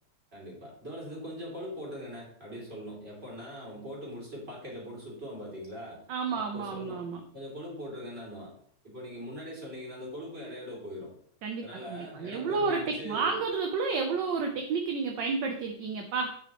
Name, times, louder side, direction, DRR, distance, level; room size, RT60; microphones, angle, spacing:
voice 1, 0.3-6.0 6.3-7.1 7.3-8.5 8.8-11.1 11.6-13.4, equal, 30° right, -4 dB, 3.2 m, -41 dB
voice 2, 6.1-7.2 11.4-16.3, right 4 dB, 65° right, 4 dB, 1.4 m, -31 dB
8.8 x 7.1 x 3.0 m, 0.62 s
omnidirectional pair, 2.3 m